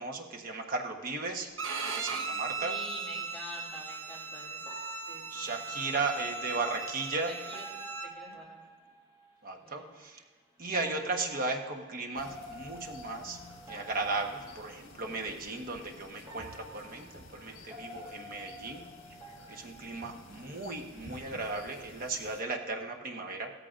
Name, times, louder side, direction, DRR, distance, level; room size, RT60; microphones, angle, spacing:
voice 1, 0.0-1.5 1.8-2.8 5.3-7.4 9.4-10.2 10.6-13.4 13.7-18.9 19.5-23.5, right 3 dB, 45° right, 3 dB, 1.1 m, -36 dB
Bowed string instrument, 1.6-8.1, right 4 dB, 75° right, 1.0 m, -38 dB
voice 2, 2.6-4.6 5.1-5.6 5.8-6.0 6.5-6.6 7.2-7.7 8.0-8.6 9.5-10.0 20.0-20.2, left 1 dB, 5° left, -7 dB, 3.2 m, -46 dB
sound 1, 3.2-3.3 4.7-9.4 10.6-14.9 15.7-15.8 16.3-20.7 21.0-21.3, equal, 20° right, 1.5 m, -49 dB
sound 2, 12.1-22.4, left 2 dB, 75° left, 1.4 m, -52 dB
16.0 x 14.0 x 2.5 m, 1.4 s
head